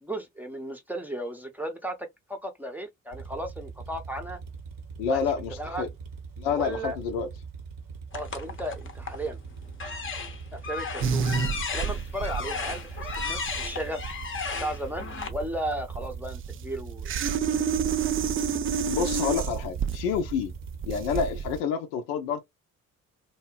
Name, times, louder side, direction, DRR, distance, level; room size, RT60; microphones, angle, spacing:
voice 1, 0.0-2.0 2.3-4.4 5.0-5.2 5.6-5.9 6.5-7.0 8.1-9.4 10.5-11.3 11.7-14.0 14.6-17.1, right 1 dB, 5° right, 0.7 m, -35 dB
sound 1, 3.1-21.6, right 5 dB, 55° right, 0.8 m, -42 dB
voice 2, 5.0-5.9 6.4-7.3 18.8-20.5 20.8-22.4, left 6 dB, 70° left, 0.6 m, -28 dB
sound 2, 8.1-9.3 9.7-15.3, left 5 dB, 30° left, 0.7 m, -35 dB
sound 3, 11.0-21.6, right 6 dB, 35° right, 0.4 m, -30 dB
2.7 x 2.1 x 2.3 m
figure-of-eight pair, 40°, 40 cm